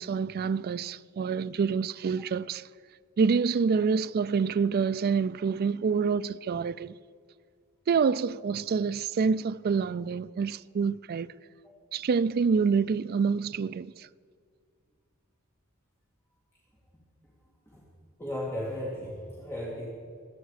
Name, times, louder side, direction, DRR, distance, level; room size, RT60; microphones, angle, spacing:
voice 1, 0.0-2.7 3.2-6.9 7.9-11.3 11.9-14.1, right 5 dB, 45° right, 0.3 m, -27 dB
voice 2, 18.2-19.9, left 1 dB, 10° left, 2.4 m, -35 dB
24.0 x 9.1 x 4.9 m
head